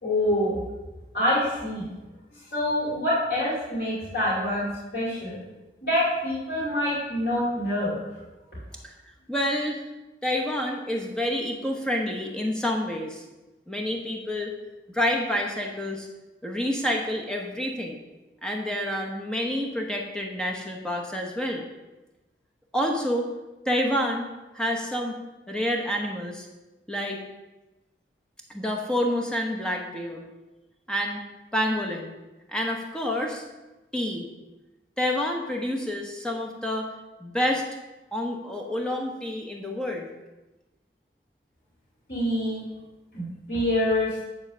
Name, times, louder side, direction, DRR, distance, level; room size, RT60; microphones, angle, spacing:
voice 1, 0.0-0.6 1.1-1.9 2.5-5.4 5.8-8.0 42.1-42.6 43.1-44.1, left 1 dB, 65° left, -10 dB, 3.2 m, -26 dB
voice 2, 9.3-9.8 10.2-13.2 13.7-14.5 14.9-16.1 16.4-18.0 18.4-21.6 22.7-23.3 23.6-24.3 24.5-25.2 25.5-26.5 26.9-27.2 28.5-30.2 30.9-31.2 31.5-32.1 32.5-33.4 33.9-34.3 35.0-36.9 37.2-37.6 38.1-40.1, equal, 5° left, 1 dB, 1.0 m, -28 dB
9.6 x 3.9 x 6.8 m, 1.1 s
head